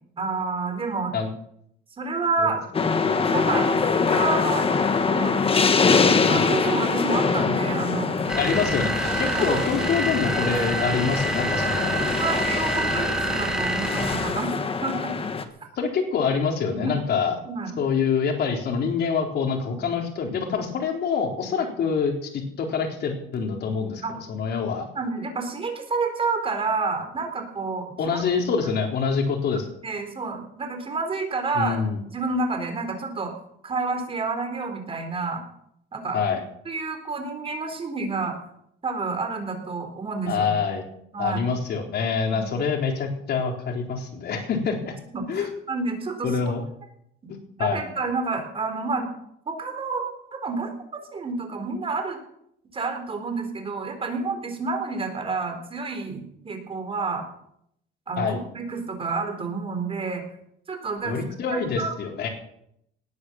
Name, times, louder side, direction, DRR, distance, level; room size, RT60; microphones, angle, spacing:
voice 1, 0.2-1.1 2.0-2.6 3.3-4.7 5.0-5.3 6.0-8.1 9.3-9.6 12.2-15.1 16.7-17.0 17.5-17.7 19.7-19.9 24.0-24.2 25.0-28.2 29.8-31.8 32.1-33.3 33.6-35.4 35.9-36.2 36.7-38.4 38.8-40.5 41.1-41.4 42.3-42.5 45.1-46.5 47.2-49.1 49.5-52.2 52.7-57.2 58.1-60.2 60.7-61.2 61.5-61.9, right 4 dB, 25° right, 5 dB, 3.9 m, -29 dB
sound 1, 2.7-15.4, left 5 dB, 25° left, 1.5 m, -24 dB
sound 2, 8.3-14.5, right 2 dB, 5° right, 1.6 m, -28 dB
voice 2, 8.4-12.0 15.8-17.4 17.8-24.9 28.0-29.7 31.5-32.0 36.1-36.4 40.3-40.8 41.2-44.9 45.3-45.5 46.2-46.6 47.3-47.8 58.2-58.4 61.0-62.3, left 5 dB, 55° left, 3 dB, 4.0 m, -26 dB
19.0 x 9.6 x 7.3 m, 0.73 s
cardioid pair, 135°, 21 cm